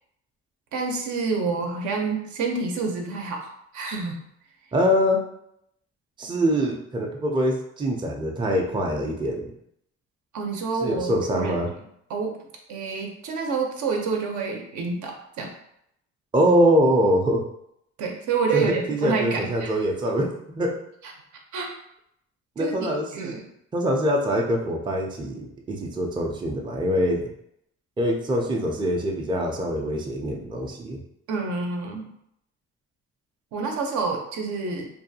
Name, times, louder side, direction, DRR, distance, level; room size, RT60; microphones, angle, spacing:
voice 1, 0.7-4.2 10.3-11.6 12.1-12.4 12.7-15.5 18.0-19.7 21.5-21.7 22.6-23.4 31.3-32.1 33.5-34.9, right 4 dB, 75° right, 1 dB, 0.6 m, -28 dB
voice 2, 4.7-5.2 6.2-9.5 10.8-11.7 16.3-17.4 18.5-20.8 22.6-23.4 23.7-27.3 28.0-31.0, equal, 15° right, 1 dB, 0.4 m, -24 dB
2.6 x 2.3 x 2.7 m, 0.75 s
cardioid pair, 90°, 30 cm